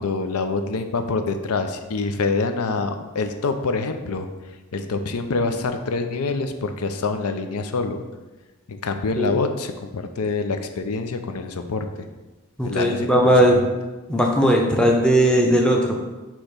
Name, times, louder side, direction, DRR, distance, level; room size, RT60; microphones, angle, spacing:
voice 1, 0.0-4.3 4.7-8.0 8.7-12.1 12.6-13.6, left 3 dB, 85° left, 7 dB, 0.5 m, -26 dB
voice 2, 12.6-13.6 14.1-16.0, equal, 5° left, 0 dB, 0.6 m, -18 dB
6.3 x 3.0 x 5.0 m, 1.2 s
head